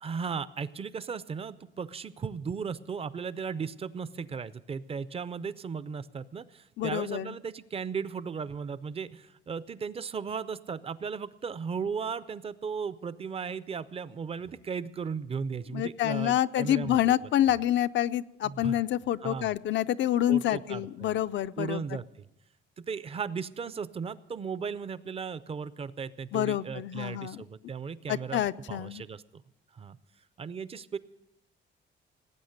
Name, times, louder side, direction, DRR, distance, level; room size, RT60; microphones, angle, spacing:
voice 1, 0.0-17.1 18.4-18.8 19.2-19.5 20.3-21.1 21.6-22.1 22.8-29.4 29.7-30.0 30.4-31.0, right 6 dB, 30° right, 17 dB, 0.4 m, -36 dB
voice 2, 6.8-7.3 15.7-21.8 26.3-27.4 28.1-29.0, left 12 dB, 70° left, 12 dB, 0.4 m, -27 dB
18.5 x 8.7 x 6.5 m, 0.90 s
cardioid pair, 145°, 20 cm